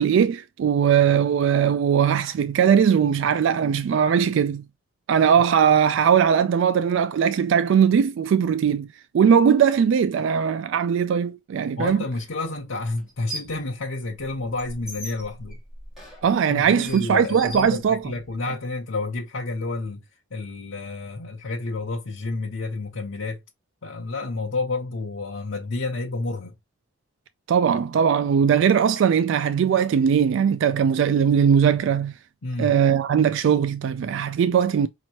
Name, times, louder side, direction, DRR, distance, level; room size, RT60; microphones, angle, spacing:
voice 1, 0.0-4.6 5.1-8.9 9.1-12.0 16.2-18.0 27.5-32.1 32.6-34.9, right 7 dB, 70° right, 0.3 m, -20 dB
voice 2, 11.8-15.6 16.5-20.0 20.3-23.4 23.8-26.5 32.4-32.7, left 3 dB, 90° left, 0.8 m, -30 dB
sound 1, 11.8-11.9 13.0-13.6 14.0-18.4, right 1 dB, ahead, 2.3 m, -40 dB
5.2 x 3.0 x 2.9 m
head